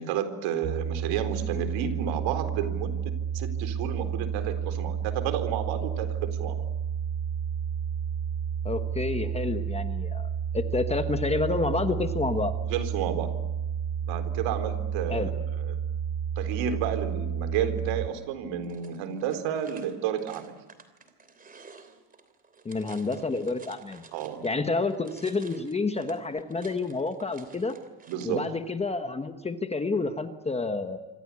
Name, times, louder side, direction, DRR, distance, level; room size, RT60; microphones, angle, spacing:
voice 1, 0.0-6.6 12.7-13.3 14.0-15.8 16.4-20.5 24.1-24.5 28.1-28.5, right 8 dB, 65° right, 8 dB, 4.1 m, -31 dB
sound 1, 0.6-18.1, right 8 dB, 35° right, 1.3 m, -31 dB
voice 2, 8.6-10.3 10.5-12.5 15.1-15.3 22.6-24.0 24.4-27.8 28.2-31.0, left 3 dB, 10° left, 8 dB, 1.2 m, -29 dB
sound 2, 18.6-24.6 24.9-28.4, right 4 dB, 15° right, 3.0 m, -52 dB
27.0 x 26.0 x 8.5 m, 1.1 s
cardioid pair, 165°, 49 cm